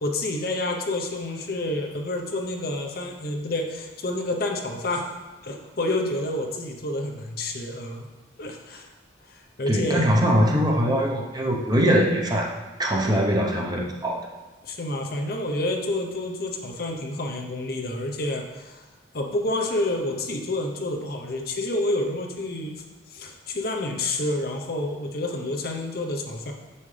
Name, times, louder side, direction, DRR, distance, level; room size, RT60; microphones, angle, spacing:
voice 1, 0.0-5.1 5.4-8.1 8.4-8.9 9.3-10.1 14.6-18.8 19.1-22.8 23.1-26.5, left 1 dB, 55° left, 2 dB, 0.7 m, -29 dB
voice 2, 9.7-12.5 12.8-14.2, equal, 20° right, -1 dB, 0.7 m, -22 dB
7.9 x 5.5 x 3.3 m, 1.2 s
head